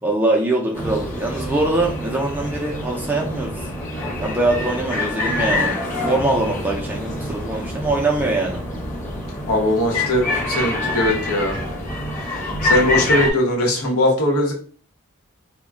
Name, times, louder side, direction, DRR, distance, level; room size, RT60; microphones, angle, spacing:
voice 1, 0.0-3.7 4.2-5.8 6.0-8.6, right 2 dB, 10° right, -1 dB, 0.4 m, -22 dB
sound 1, 0.7-13.3, left 1 dB, 35° left, 0.8 m, -26 dB
voice 2, 9.5-11.6 12.3-14.5, left 1 dB, 85° left, -1 dB, 0.8 m, -20 dB
2.2 x 2.1 x 3.4 m, 0.41 s
head